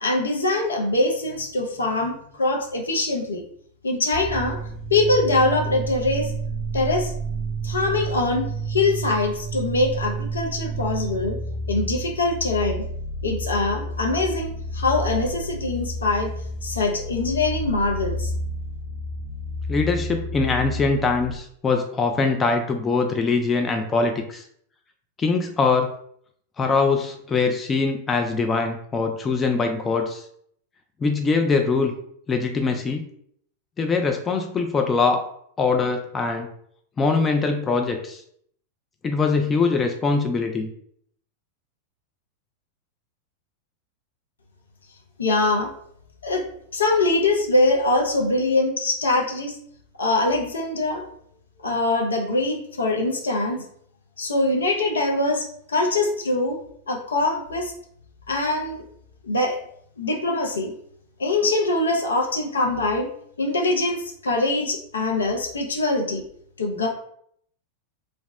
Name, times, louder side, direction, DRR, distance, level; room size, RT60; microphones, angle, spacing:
voice 1, 0.0-3.4 3.8-4.6 4.9-6.3 6.7-7.1 7.6-11.4 11.7-12.8 13.2-16.3 16.6-18.3 45.2-45.7 46.2-46.4 46.7-49.6 50.0-51.1 51.6-53.6 54.2-56.6 56.9-57.7 58.3-58.8 59.2-59.6 60.0-60.7 61.2-63.1 63.4-66.2 66.6-66.9, left 2 dB, 70° left, 2 dB, 0.5 m, -23 dB
sound 1, 4.1-21.3, right 2 dB, 40° left, 0.9 m, -30 dB
voice 2, 19.7-24.4 25.2-25.9 26.6-30.2 31.0-31.9 32.3-33.0 33.8-35.3 35.6-36.5 37.0-38.2 39.0-40.7, left 4 dB, 20° left, 4 dB, 0.3 m, -22 dB
2.7 x 2.0 x 3.2 m, 0.66 s
figure-of-eight pair, 90°, 0 cm